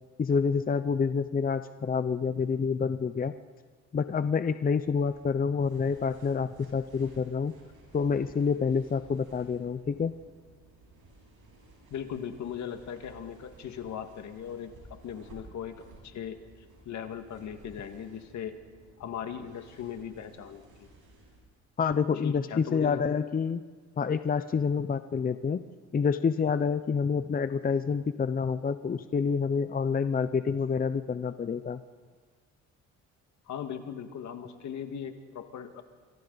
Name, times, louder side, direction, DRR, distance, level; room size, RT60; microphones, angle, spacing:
voice 1, 0.2-3.3 3.9-7.5 7.9-10.1 21.8-23.6 24.0-25.6 25.9-31.8, left 5 dB, 30° left, 11 dB, 0.7 m, -28 dB
sound 1, 4.8-21.4, right 2 dB, 80° right, 7.7 m, -55 dB
voice 2, 11.9-16.4 16.9-18.6 19.0-20.9 22.1-23.0 33.5-35.8, left 8 dB, 70° left, 7 dB, 1.9 m, -39 dB
28.0 x 25.0 x 4.1 m, 1.5 s
cardioid pair, 90°, 30 cm